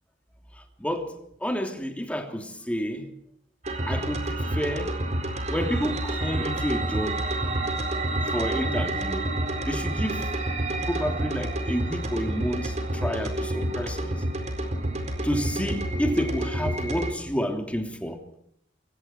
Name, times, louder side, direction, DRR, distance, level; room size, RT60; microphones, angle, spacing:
voice 1, 0.8-1.1 1.4-3.1 3.9-5.0 5.5-7.6 8.3-9.3 9.6-10.3 10.9-14.2 15.2-18.2, equal, 5° left, 4 dB, 3.0 m, -30 dB
sound 1, 3.6-17.1, right 1 dB, 35° right, 4.4 m, -29 dB
28.5 x 23.5 x 4.5 m, 0.71 s
head